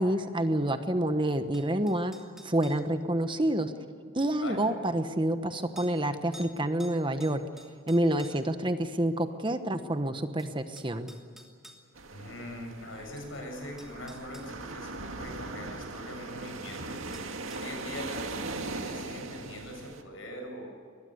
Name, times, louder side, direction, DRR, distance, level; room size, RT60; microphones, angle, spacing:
voice 1, 0.0-2.1 2.4-3.7 4.1-7.4 7.9-11.1, right 1 dB, 25° right, 9 dB, 1.1 m, -28 dB
sound 1, 1.5-2.9 4.3-4.4 5.8-6.0 6.3-6.5 6.8-8.6 9.9-10.0 10.4-11.8 13.2-13.3 13.8-14.5 17.1-17.7, equal, ahead, 2.8 m, -51 dB
voice 2, 4.4-4.7 12.1-17.2 17.5-20.7, left 1 dB, 75° left, 2 dB, 7.6 m, -42 dB
sound 2, 12.0-20.0, right 3 dB, 80° right, 1.9 m, -39 dB
22.5 x 20.5 x 8.1 m, 2.2 s
head